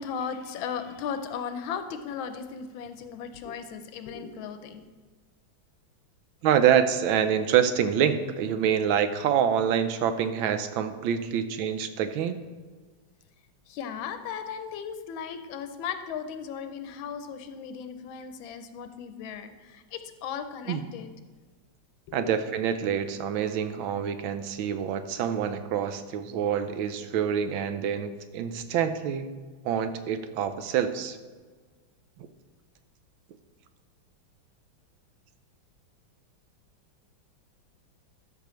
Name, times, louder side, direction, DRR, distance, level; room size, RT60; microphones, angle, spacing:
voice 1, 0.0-4.9 13.7-21.1 22.1-22.3, left 7 dB, 80° left, 9 dB, 1.4 m, -36 dB
voice 2, 6.4-12.4 20.7-20.8 22.1-29.3 29.6-31.2, right 8 dB, 80° right, 10 dB, 1.4 m, -26 dB
12.5 x 6.0 x 3.1 m, 1.4 s
omnidirectional pair, 2.2 m